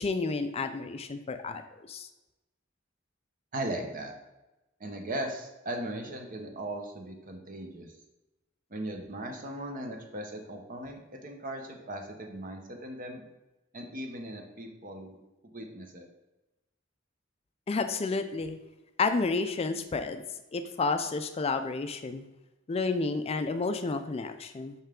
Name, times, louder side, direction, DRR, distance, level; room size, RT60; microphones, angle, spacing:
voice 1, 0.0-1.6 1.9-2.1 17.7-18.6 19.0-20.2 20.5-22.2 22.7-24.7, left 3 dB, 30° left, 8 dB, 0.4 m, -30 dB
voice 2, 3.5-4.1 4.8-7.9 8.7-13.2 13.7-15.2 15.5-16.1, right 1 dB, 45° right, 3 dB, 0.9 m, -38 dB
5.6 x 5.6 x 3.6 m, 1.0 s
head